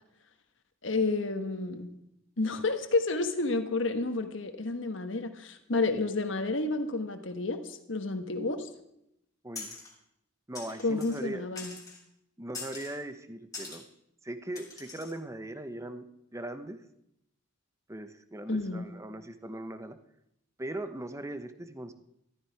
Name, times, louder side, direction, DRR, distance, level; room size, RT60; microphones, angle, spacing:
voice 1, 0.8-1.9 2.4-8.7 10.8-11.7 18.5-18.9, left 3 dB, 70° left, 7 dB, 1.3 m, -30 dB
sound 1, 9.6-9.9 10.5-11.2 11.6-12.0 12.5-13.0 13.5-13.8 14.6-15.2, left 4 dB, 20° left, 3.1 m, -43 dB
voice 2, 10.5-11.5 12.4-13.8 14.2-16.0 16.3-16.8 17.9-20.0 20.6-21.9, right 1 dB, 15° right, 10 dB, 0.9 m, -39 dB
13.5 x 13.5 x 4.7 m, 0.79 s
head